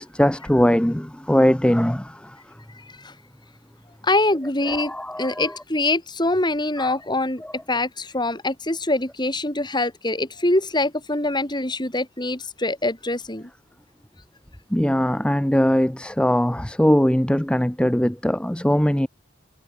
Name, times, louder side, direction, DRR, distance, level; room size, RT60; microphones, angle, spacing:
voice 1, 0.0-2.4 4.7-5.5 6.8-6.9 7.4-7.5 14.7-19.1, equal, 5° left, 0.7 m, -21 dB
voice 2, 4.0-7.4 7.7-13.5, left 2 dB, 20° left, 4.2 m, -24 dB
head